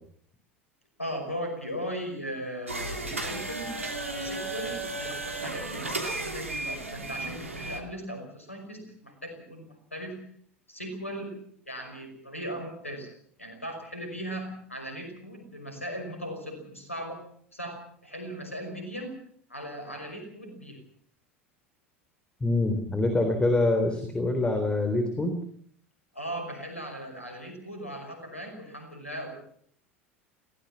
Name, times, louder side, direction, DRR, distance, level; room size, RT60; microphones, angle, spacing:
voice 1, 1.0-10.2 10.7-11.4 11.7-13.1 13.4-17.2 17.5-19.2 19.5-20.8 26.1-29.4, equal, 90° left, 5 dB, 5.5 m, -38 dB
sound 1, 2.7-7.8, right 2 dB, 85° right, 2.8 m, -34 dB
voice 2, 22.4-25.3, left 2 dB, 15° left, 6 dB, 3.7 m, -25 dB
21.5 x 17.5 x 7.3 m, 0.62 s
figure-of-eight pair, 75°, 7 cm